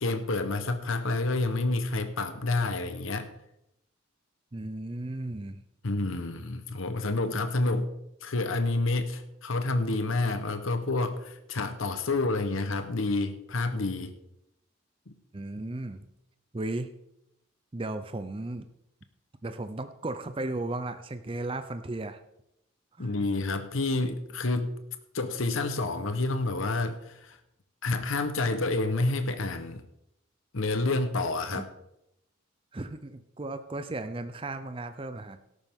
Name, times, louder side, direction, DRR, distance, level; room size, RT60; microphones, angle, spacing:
voice 1, 0.0-3.3 5.8-7.9 8.2-14.2 15.1-15.2 23.0-24.8 25.1-27.4 27.8-29.8 30.5-31.7, left 2 dB, 75° left, 9 dB, 1.0 m, -29 dB
voice 2, 4.5-5.6 15.3-16.1 16.5-16.9 17.7-18.6 19.4-22.2 23.0-23.1 31.5-31.6 32.7-35.4, right 2 dB, 25° right, 9 dB, 0.5 m, -35 dB
13.0 x 11.5 x 3.6 m, 0.82 s
head